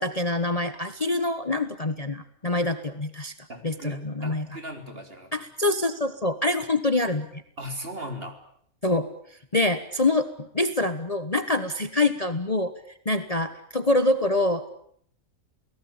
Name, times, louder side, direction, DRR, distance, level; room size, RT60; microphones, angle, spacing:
voice 1, 0.0-3.3 3.6-4.5 5.3-7.4 8.8-9.1 9.5-12.7 13.0-14.7, left 2 dB, 30° left, 10 dB, 1.3 m, -25 dB
voice 2, 3.5-5.3 7.6-8.4, equal, 40° right, 5 dB, 4.0 m, -37 dB
29.0 x 18.5 x 8.9 m, 0.66 s
omnidirectional pair, 1.5 m